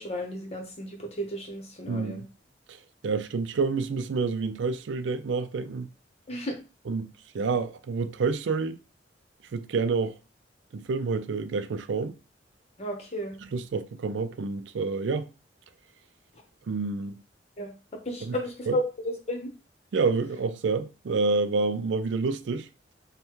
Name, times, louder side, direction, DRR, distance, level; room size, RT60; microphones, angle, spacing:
voice 1, 0.0-2.2 6.3-6.6 12.8-13.3 17.6-19.5, equal, 35° left, 1.0 m, -33 dB
voice 2, 1.9-2.3 3.0-5.9 6.9-8.8 9.5-10.2 10.7-12.2 13.5-15.3 16.7-17.2 18.2-18.4 18.7-18.8 19.9-22.7, right 4 dB, 85° right, 0.4 m, -28 dB
5.4 x 2.2 x 3.0 m
head